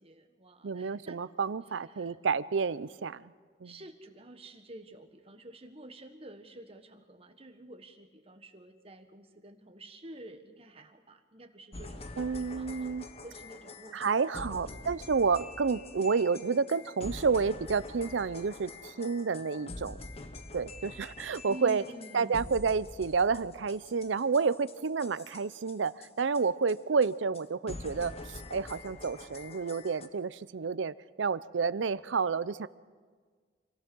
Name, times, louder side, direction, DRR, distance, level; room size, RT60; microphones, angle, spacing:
voice 1, 0.0-1.2 1.9-2.2 3.6-12.1 12.4-14.0 14.4-14.8 17.1-17.2 21.5-22.6, right 1 dB, 30° right, 6 dB, 1.5 m, -49 dB
voice 2, 0.6-3.3 3.6-3.7 12.2-13.0 13.9-20.0 20.5-21.8 22.1-25.9 26.2-32.7, right 5 dB, 85° right, 17 dB, 0.6 m, -30 dB
sound 1, 11.7-26.4 26.7-26.8 27.0-27.1 27.3-27.4 27.7-30.1, left 2 dB, 35° left, 1.1 m, -45 dB
26.5 x 17.0 x 6.2 m, 1.5 s
head